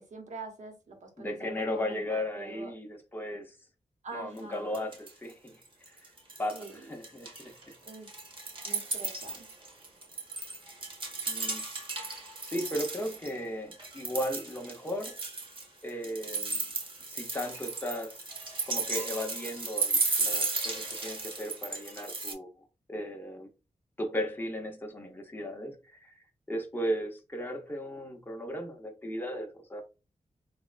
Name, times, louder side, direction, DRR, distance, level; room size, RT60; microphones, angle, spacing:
voice 1, 0.0-2.7 4.0-4.8 6.5-6.8 7.8-8.1 8.6-9.5, right 3 dB, 70° right, 0.8 m, -44 dB
voice 2, 1.2-3.5 4.1-5.5 5.9-6.0 6.4-7.5 11.3-11.6 12.0-15.2 15.8-16.6 17.1-18.2 18.7-22.5 22.9-23.5 24.0-29.8, equal, 15° left, 0.8 m, -36 dB
sound 1, 4.4-4.5 4.7-5.3 5.6-6.7 7.0-13.3 13.7-22.3, right 3 dB, 40° right, 1.0 m, -35 dB
3.4 x 2.1 x 2.4 m
wide cardioid pair, 85°, 13 cm